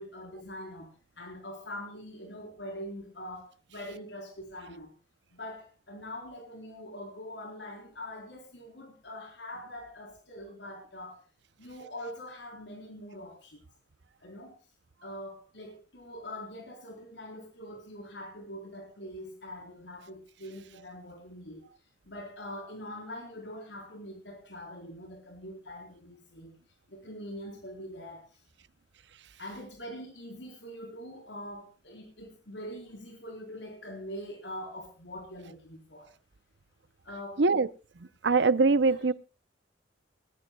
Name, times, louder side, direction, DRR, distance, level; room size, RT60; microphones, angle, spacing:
voice 1, 0.0-4.9 5.3-11.2 11.6-13.6 14.2-14.6 15.0-21.7 22.1-26.6 26.9-28.4 29.4-36.1 37.0-37.4 38.8-39.0, left 1 dB, 75° left, 4.2 m, -43 dB
voice 2, 37.4-37.7 38.2-39.1, right 4 dB, 75° right, 0.8 m, -22 dB
20.0 x 19.0 x 2.3 m
head